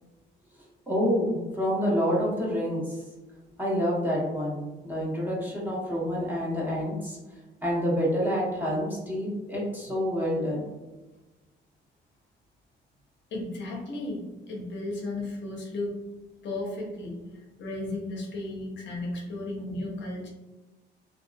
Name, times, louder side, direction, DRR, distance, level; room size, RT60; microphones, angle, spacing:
voice 1, 0.9-3.0 3.6-7.2 7.6-10.6, equal, 10° right, -6 dB, 1.0 m, -28 dB
voice 2, 13.3-16.0 16.4-17.2 17.6-20.3, left 2 dB, 65° left, -1 dB, 0.7 m, -34 dB
2.6 x 2.4 x 2.3 m, 1.1 s
cardioid pair, 90°, 20 cm